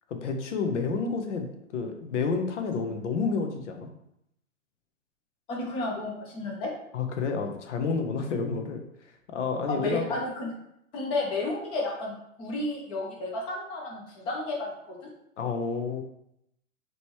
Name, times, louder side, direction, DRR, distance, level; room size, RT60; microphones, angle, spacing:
voice 1, 0.1-1.5 1.7-3.9 6.9-8.8 9.3-10.0 15.4-16.0, left 4 dB, 60° left, 4 dB, 0.9 m, -29 dB
voice 2, 5.5-6.7 9.7-10.5 10.9-15.0, left 2 dB, 15° left, -1 dB, 0.6 m, -32 dB
5.1 x 3.1 x 3.1 m, 0.78 s
hypercardioid pair, 145°, 42 cm